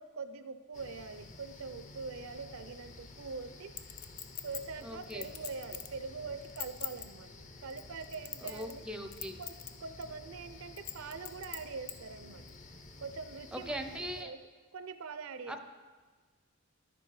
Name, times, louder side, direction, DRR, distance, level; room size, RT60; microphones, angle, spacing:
voice 1, 0.0-3.7 4.4-7.3 7.6-8.8 9.4-9.5 9.8-12.4 13.0-13.8 14.2-14.4 14.7-15.6, right 4 dB, 75° right, 11 dB, 0.5 m, -43 dB
sound 1, 0.7-14.2, left 2 dB, 35° left, 0.6 m, -52 dB
Chink clink, 3.8-6.0 6.4-7.1 7.7-8.8 9.1-9.7 10.0-10.1 10.8-12.0 12.5-12.6, left 10 dB, 80° left, 0.6 m, -41 dB
voice 2, 4.8-5.3 8.4-9.4 13.5-14.3 15.5-15.6, equal, 5° right, 6 dB, 0.5 m, -40 dB
10.5 x 6.8 x 4.8 m, 1.4 s
head